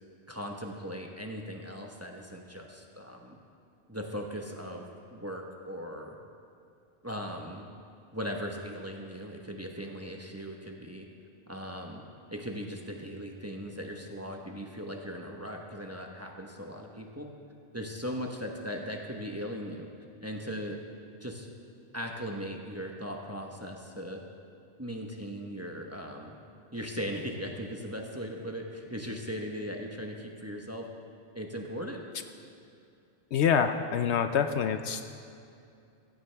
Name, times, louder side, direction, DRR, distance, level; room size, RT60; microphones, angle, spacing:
voice 1, 0.3-3.4 3.9-6.2 7.0-7.6 8.1-11.1 11.5-12.0 12.3-17.3 17.7-19.9 20.2-20.8 21.2-21.5 21.9-24.2 24.8-26.4 26.7-30.9 31.3-32.0, equal, 15° right, 1 dB, 1.0 m, -38 dB
voice 2, 33.3-35.1, left 7 dB, 70° left, 8 dB, 0.8 m, -26 dB
16.0 x 15.0 x 3.4 m, 2.5 s
omnidirectional pair, 1.2 m